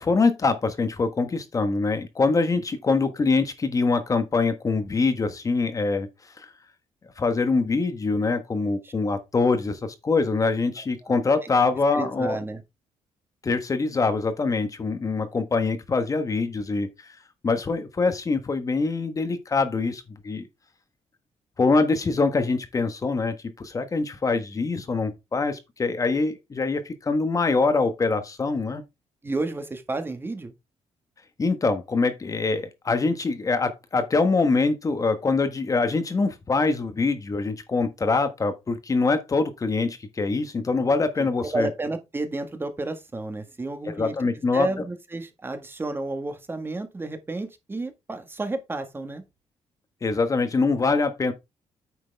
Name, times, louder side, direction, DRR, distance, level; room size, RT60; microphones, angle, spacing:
voice 1, 0.0-6.1 6.4-6.5 7.2-12.4 13.4-16.9 17.4-20.5 21.6-28.8 31.4-41.7 43.9-44.7 50.0-51.3, left 3 dB, 30° left, 1.3 m, -24 dB
voice 2, 11.9-12.6 29.2-30.5 41.2-44.1 44.5-49.2, right 2 dB, 20° right, 1.6 m, -31 dB
9.3 x 6.3 x 3.4 m
cardioid pair, 135°, 11 cm